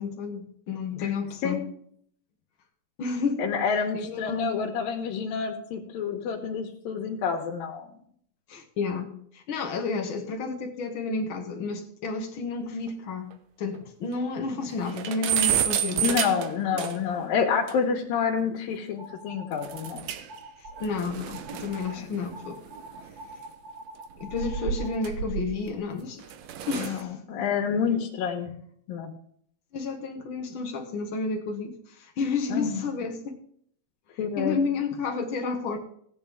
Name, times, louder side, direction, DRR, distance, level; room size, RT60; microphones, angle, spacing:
voice 1, 0.0-1.6 3.0-3.5 3.9-4.6 8.5-13.3 13.6-16.1 20.8-22.6 24.2-26.2 26.7-27.2 27.9-28.0 29.7-33.4 34.4-35.8, left 4 dB, 60° left, 4 dB, 1.3 m, -31 dB
voice 2, 3.4-7.9 16.0-20.1 22.0-22.1 26.8-28.5 28.9-29.1 32.5-32.8 34.2-34.6, left 6 dB, 80° left, -1 dB, 2.9 m, -28 dB
sound 1, 12.9-13.0 13.3-13.4 13.7-13.8 14.2-14.3 14.6-17.2 17.7-17.8 19.6-20.4 20.7-23.3 24.1-25.7 26.2-27.0, right 9 dB, 75° right, 1.6 m, -31 dB
sound 2, 19.0-19.9 20.3-21.0 21.3-22.0 22.3-25.0, right 1 dB, 40° right, 1.9 m, -44 dB
16.5 x 9.1 x 3.5 m, 0.64 s
omnidirectional pair, 4.1 m